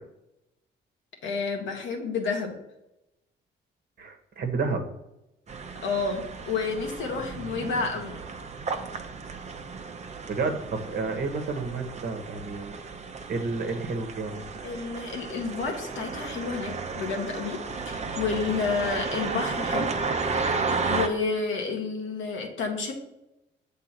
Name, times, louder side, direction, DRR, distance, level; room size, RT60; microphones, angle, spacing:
voice 1, 1.2-2.6 5.8-8.2 14.6-19.9 20.5-20.6 20.9-22.9, left 4 dB, 75° left, 2 dB, 1.5 m, -30 dB
voice 2, 4.0-4.8 10.3-12.8 13.3-14.6, right 4 dB, 50° right, 5 dB, 1.2 m, -31 dB
sound 1, 5.5-21.1, right 4 dB, 35° right, 0.8 m, -33 dB
7.5 x 3.7 x 5.8 m, 0.89 s
cardioid pair, 90°, 20 cm